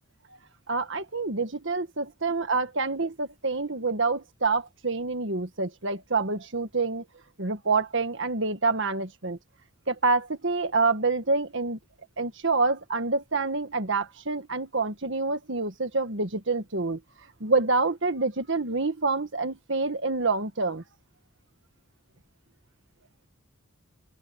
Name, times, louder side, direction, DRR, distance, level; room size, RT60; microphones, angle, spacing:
voice 1, 0.7-7.0 7.4-9.4 9.9-11.8 12.2-17.0 17.4-20.8, right 3 dB, 60° right, 1.6 m, -27 dB
head